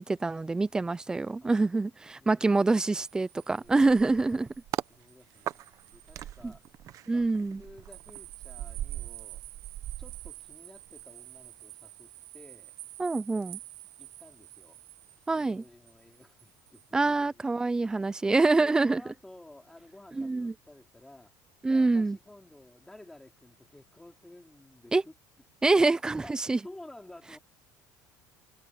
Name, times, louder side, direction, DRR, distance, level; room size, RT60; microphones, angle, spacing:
voice 1, 0.0-4.5 6.4-6.5 7.1-7.6 13.0-13.6 15.3-15.6 16.9-19.0 20.1-20.5 21.6-22.2 24.9-25.0 25.6-26.6, right 3 dB, 10° right, 0.3 m, -25 dB
voice 2, 2.2-2.5 3.5-3.8 4.0-4.4 4.9-6.6 7.1-7.3 7.6-9.4 10.0-12.7 14.0-14.8 15.3-17.5 18.6-21.3 21.7-25.1 25.7-25.8 26.2-26.3 26.6-27.4, left 1 dB, 5° left, 4.5 m, -52 dB
sound 1, 3.0-6.2 6.6-6.7 7.9-16.9, right 20 dB, 75° right, 1.5 m, -49 dB
sound 2, 3.6-4.9 5.5-11.0 11.4-11.6, right 12 dB, 45° right, 0.8 m, -40 dB
cardioid pair, 140°, 8 cm